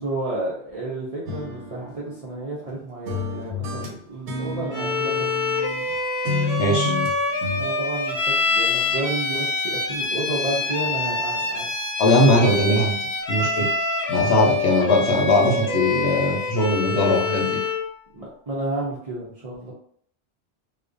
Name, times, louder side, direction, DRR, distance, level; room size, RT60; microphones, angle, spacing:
voice 1, 0.0-5.3 7.6-11.7 15.0-15.1 18.1-19.7, right 2 dB, 50° right, -5 dB, 0.4 m, -31 dB
sound 1, 1.3-2.7 3.1-5.9 6.2-7.7, left 3 dB, 85° right, 0.9 m, -30 dB
Bowed string instrument, 4.7-17.9, left 3 dB, 45° left, 0.6 m, -26 dB
voice 2, 6.6-6.9 12.0-13.0 13.3-13.7 14.1-17.6, left 1 dB, 75° left, -1 dB, 0.9 m, -20 dB
2.4 x 2.1 x 2.4 m, 0.62 s
omnidirectional pair, 1.1 m